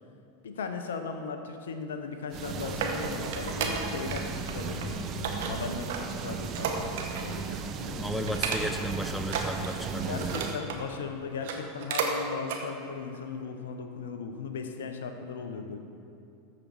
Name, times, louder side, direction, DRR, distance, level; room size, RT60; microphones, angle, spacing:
voice 1, 0.4-8.4 9.9-15.8, left 5 dB, 70° left, 6 dB, 0.7 m, -38 dB
sound 1, 2.3-10.6, right 5 dB, 35° right, 0.7 m, -36 dB
sound 2, 2.3-4.2 4.5-4.9 5.2-7.4 7.7-7.9 8.3-8.9 9.2-10.8 11.3-12.2 12.4-12.6 13.1-13.2, right 6 dB, 60° right, 1.0 m, -33 dB
voice 2, 8.0-10.4, equal, 5° left, 6 dB, 0.6 m, -34 dB
13.5 x 5.1 x 4.7 m, 2.7 s
figure-of-eight pair, 85°, 0 cm